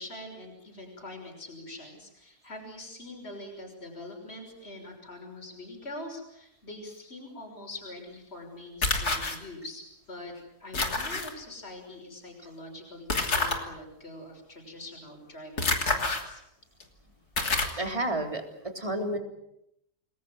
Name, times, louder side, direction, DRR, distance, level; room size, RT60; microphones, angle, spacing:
voice 1, 0.0-10.3 10.6-16.4, left 1 dB, 40° left, 2 dB, 6.4 m, -44 dB
sound 1, 8.8-9.4 10.7-11.3 13.1-13.6 15.6-16.2 16.8-16.9 17.4-17.8, left 3 dB, 85° left, 3.5 m, -27 dB
voice 2, 17.8-18.4 18.7-19.2, right 1 dB, 20° right, 4 dB, 3.7 m, -30 dB
28.5 x 21.0 x 7.9 m, 0.79 s
omnidirectional pair, 1.6 m